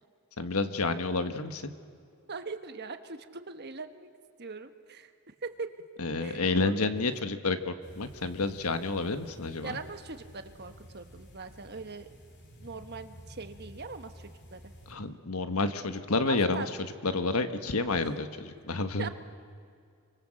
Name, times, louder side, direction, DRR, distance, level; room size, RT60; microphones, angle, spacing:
voice 1, 0.4-1.7 6.0-9.8 14.9-16.6 17.0-19.1, left 3 dB, 80° left, 9 dB, 1.4 m, -30 dB
voice 2, 2.3-4.1 4.4-5.1 5.4-5.7 6.2-7.1 9.6-12.1 12.6-14.6 16.2-16.7 18.0-18.2 19.0-19.1, right 4 dB, 50° right, 8 dB, 1.4 m, -41 dB
sound 1, 7.8-14.9, equal, 50° left, 3.6 m, -51 dB
28.0 x 24.5 x 7.7 m, 2.4 s
head